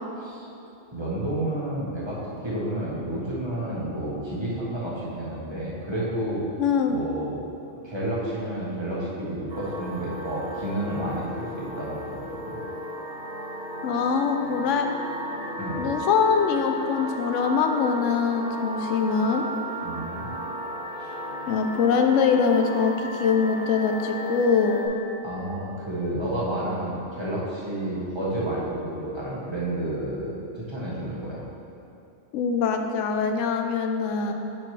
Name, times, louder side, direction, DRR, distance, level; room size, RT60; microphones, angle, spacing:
voice 1, 0.9-6.4 6.9-7.4 7.8-12.6 15.6-15.9 19.8-20.3 21.0-21.1 25.2-31.4, right 1 dB, 25° right, -7 dB, 1.3 m, -30 dB
voice 2, 6.6-7.0 13.8-14.9 15.8-19.5 21.5-22.9 23.2-24.8 32.3-34.3, left 5 dB, 85° left, 5 dB, 0.9 m, -23 dB
sound 1, 9.5-24.9, equal, 40° right, 1.1 m, -35 dB
8.8 x 4.6 x 3.2 m, 2.9 s
omnidirectional pair, 1.2 m